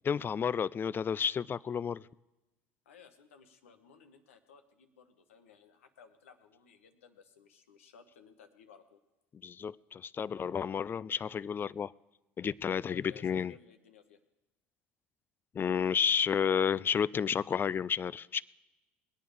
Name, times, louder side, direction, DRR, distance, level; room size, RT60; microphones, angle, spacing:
voice 1, 0.1-2.0 9.4-11.9 12.4-13.5 15.5-18.4, left 7 dB, 30° left, 0.4 m, -31 dB
voice 2, 2.8-9.0 12.9-14.2, left 7 dB, 85° left, 1.2 m, -59 dB
20.5 x 9.2 x 5.1 m
hypercardioid pair, 70°, 7 cm